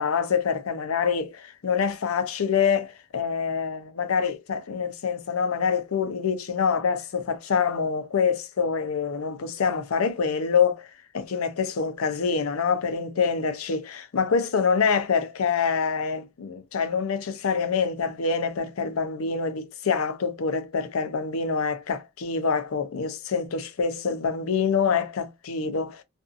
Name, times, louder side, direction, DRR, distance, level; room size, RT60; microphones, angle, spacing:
voice 1, 0.0-10.9 11.1-26.0, left 6 dB, 90° left, 0.5 m, -26 dB
2.6 x 2.4 x 2.4 m
head